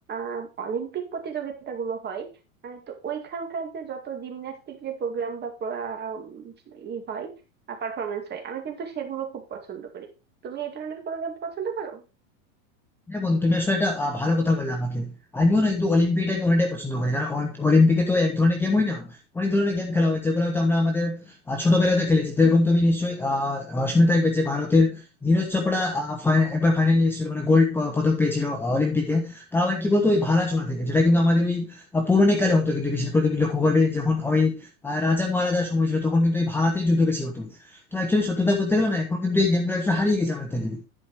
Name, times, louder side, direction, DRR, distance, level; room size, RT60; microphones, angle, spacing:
voice 1, 0.1-2.3 2.6-7.3 7.7-10.1 10.4-12.0, right 6 dB, 25° right, 2.2 m, -33 dB
voice 2, 13.1-40.8, left 2 dB, 5° left, 0.9 m, -22 dB
11.0 x 5.1 x 4.7 m
supercardioid pair, 145°, 42 cm